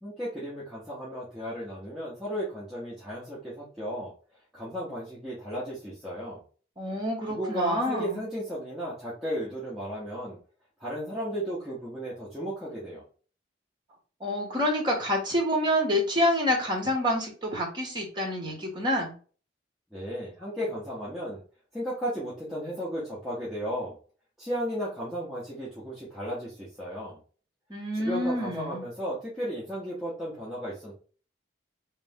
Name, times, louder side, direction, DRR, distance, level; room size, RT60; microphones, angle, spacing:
voice 1, 0.0-4.1 4.5-6.4 7.3-10.4 10.8-13.0 19.9-21.4 21.7-24.0 24.4-27.2 27.9-30.9, equal, ahead, -9 dB, 1.2 m, -34 dB
voice 2, 6.8-8.2 14.2-19.1 27.7-28.8, equal, 25° right, 1 dB, 1.3 m, -27 dB
3.3 x 3.3 x 3.6 m, 0.39 s
head